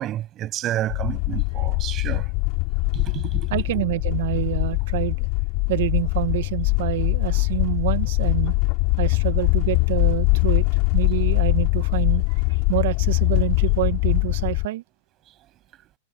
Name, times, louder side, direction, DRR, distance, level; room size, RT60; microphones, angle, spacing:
voice 1, 0.0-2.3 2.9-3.6, right 13 dB, 35° right, 7.9 m, -30 dB
sound 1, 0.9-14.7, left 33 dB, 50° left, 5.6 m, -22 dB
voice 2, 3.5-5.3 5.7-8.6 9.0-10.7 10.9-14.8, right 18 dB, 65° right, 1.8 m, -27 dB
hypercardioid pair, 110°, 0 cm